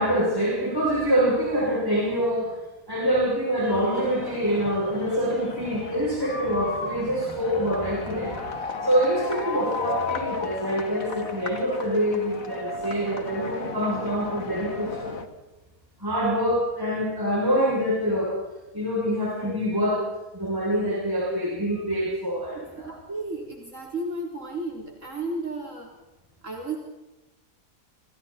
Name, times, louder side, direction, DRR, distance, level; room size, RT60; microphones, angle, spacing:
voice 1, 0.0-2.5 2.9-15.1 16.0-18.4 18.7-20.0 20.3-22.9, equal, 15° right, -4 dB, 8.1 m, -25 dB
sound 1, 3.6-15.3, left 3 dB, 60° left, 2.7 m, -34 dB
voice 2, 22.5-25.9 26.4-26.8, right 2 dB, 50° right, -1 dB, 4.3 m, -33 dB
29.5 x 29.0 x 4.5 m, 1.1 s
omnidirectional pair, 1.6 m